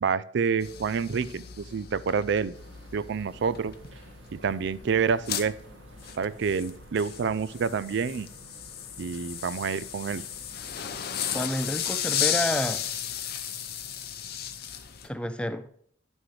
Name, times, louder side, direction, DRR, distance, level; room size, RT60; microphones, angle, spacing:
voice 1, 0.0-2.5 2.9-3.7 4.3-5.5 6.2-8.3 9.0-10.2, right 6 dB, 60° right, 17 dB, 0.4 m, -28 dB
sound 1, 0.6-15.1, left 9 dB, 55° left, 0.7 m, -35 dB
sound 2, 2.5-11.0, right 2 dB, 75° right, 1.6 m, -51 dB
voice 2, 11.3-12.8 15.0-15.6, left 1 dB, 5° left, 11 dB, 0.5 m, -29 dB
11.0 x 6.3 x 3.2 m, 0.63 s
head